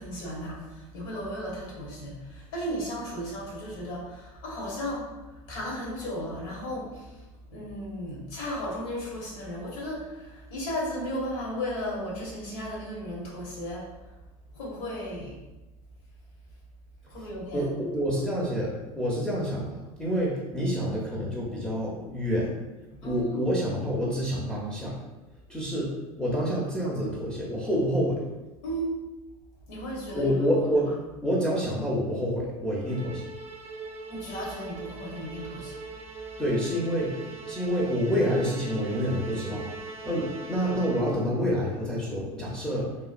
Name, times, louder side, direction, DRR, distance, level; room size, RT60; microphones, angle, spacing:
voice 1, 0.0-7.2 7.5-13.9 14.5-15.4 17.1-17.7 22.9-23.4 28.6-28.9 29.7-31.0 34.1-35.8, equal, 65° left, -4 dB, 1.3 m, -35 dB
voice 2, 17.5-22.6 23.0-25.0 25.5-28.2 30.1-30.9 31.2-33.2 36.4-37.2 37.5-39.7 40.0-42.9, equal, 5° left, -6 dB, 0.6 m, -28 dB
Musical instrument, 32.8-41.4, right 4 dB, 35° right, 0.6 m, -41 dB
3.0 x 2.3 x 2.4 m, 1.1 s
hypercardioid pair, 90°, 19 cm